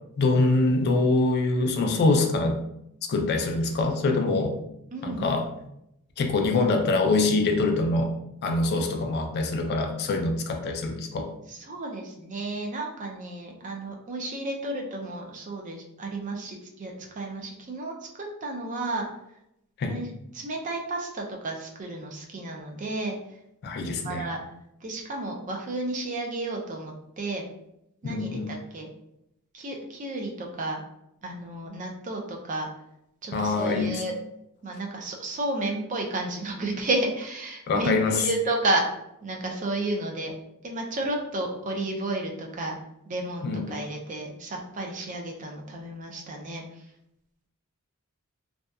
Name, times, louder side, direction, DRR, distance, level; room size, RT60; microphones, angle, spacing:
voice 1, 0.2-2.6 3.1-4.6 5.0-5.5 6.2-8.1 8.4-11.3 19.8-20.0 23.6-24.3 28.0-28.5 33.3-34.0 37.7-38.2 43.4-43.7, left 3 dB, 45° left, 4 dB, 0.3 m, -24 dB
voice 2, 4.9-5.3 11.5-19.1 19.9-23.2 24.0-24.4 24.8-27.5 28.0-28.9 29.5-30.8 31.2-32.7 33.2-34.1 34.6-38.8 39.2-40.3 40.6-42.8 43.1-46.8, right 2 dB, 35° right, 1 dB, 0.4 m, -32 dB
2.7 x 2.2 x 2.3 m, 0.80 s
head